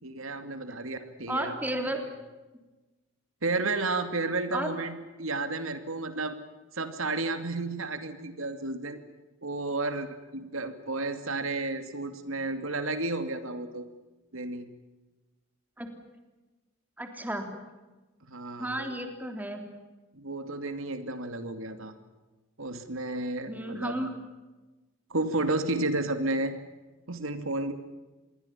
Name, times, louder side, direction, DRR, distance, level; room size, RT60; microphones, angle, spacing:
voice 1, 0.0-1.6 3.4-6.4 6.7-9.0 9.4-13.9 14.3-14.7 18.3-18.9 20.1-21.9 22.6-24.0 25.1-26.5 27.1-27.7, right 2 dB, 90° right, 9 dB, 2.6 m, -32 dB
voice 2, 1.3-2.0 4.5-4.7 15.8-15.9 17.0-17.5 18.6-19.6 23.5-24.1, right 1 dB, 10° right, 4 dB, 3.5 m, -33 dB
27.5 x 22.5 x 7.3 m, 1.2 s
head